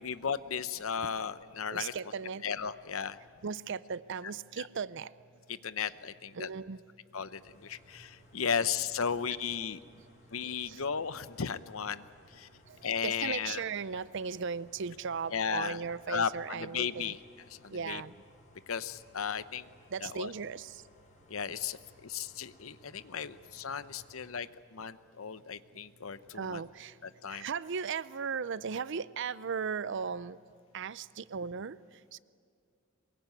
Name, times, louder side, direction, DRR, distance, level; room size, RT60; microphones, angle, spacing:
voice 1, 0.0-1.9 2.4-3.2 5.6-6.5 7.1-9.8 10.3-12.0 12.3-12.5 12.8-13.6 15.3-15.8 16.1-16.3 16.7-17.2 17.6-18.0 18.7-19.7 20.1-20.3 21.3-26.6 27.2-27.4, left 7 dB, 80° left, 14 dB, 0.8 m, -35 dB
voice 2, 1.7-2.4 3.4-5.1 6.3-6.8 10.7-10.8 12.7-12.8 13.0-17.2 17.7-18.1 19.9-20.8 26.3-27.0 27.3-30.4 30.7-31.8 32.1-32.2, right 6 dB, 60° right, 18 dB, 0.5 m, -37 dB
sound 1, 7.4-24.3, left 1 dB, 35° left, 4.7 m, -61 dB
23.0 x 21.5 x 9.3 m, 2.2 s
head